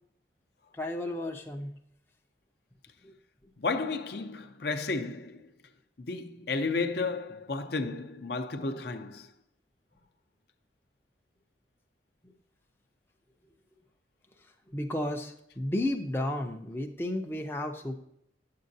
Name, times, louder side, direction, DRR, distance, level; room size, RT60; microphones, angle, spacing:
voice 1, 0.7-1.8 3.0-3.1 14.7-18.0, left 1 dB, 10° left, 0.5 m, -33 dB
voice 2, 3.6-5.5 6.0-9.3, left 3 dB, 60° left, 0.6 m, -32 dB
9.6 x 7.5 x 2.7 m
head